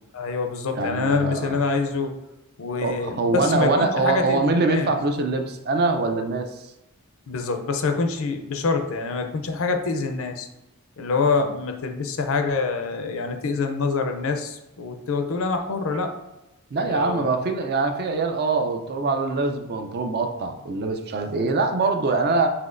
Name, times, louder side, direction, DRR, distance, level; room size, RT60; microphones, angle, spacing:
voice 1, 0.1-2.2 2.6-4.9 7.3-10.5 11.0-16.2 16.9-17.3, left 4 dB, 65° left, 6 dB, 0.5 m, -26 dB
voice 2, 0.7-1.6 2.8-6.7 16.7-22.5, right 3 dB, 45° right, 6 dB, 0.4 m, -23 dB
5.8 x 3.0 x 2.5 m, 0.98 s
head